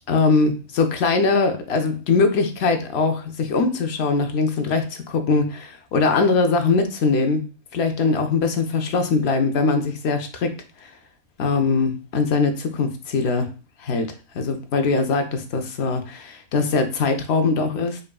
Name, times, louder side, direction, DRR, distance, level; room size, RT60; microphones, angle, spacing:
voice 1, 0.1-7.5 7.7-10.6 11.4-13.5 13.8-18.0, left 4 dB, 65° left, 6 dB, 0.7 m, -21 dB
5.2 x 2.5 x 2.3 m, 0.35 s
omnidirectional pair, 1.4 m